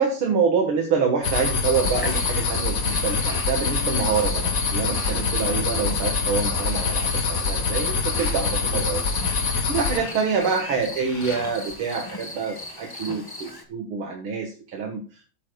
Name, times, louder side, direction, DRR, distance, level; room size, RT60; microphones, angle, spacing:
voice 1, 0.0-9.4 9.7-15.0, right 5 dB, 75° right, 1 dB, 2.3 m, -26 dB
sound 1, 1.2-10.0, left 4 dB, 45° left, 1.5 m, -25 dB
sound 2, 1.7-13.6, left 1 dB, 15° left, 1.0 m, -38 dB
sound 3, 2.9-4.0 4.3-5.4 5.9-6.0 6.2-8.5 9.5-11.7 12.1-13.0, left 3 dB, 70° left, 3.6 m, -43 dB
14.0 x 8.4 x 2.3 m, 0.36 s
omnidirectional pair, 2.3 m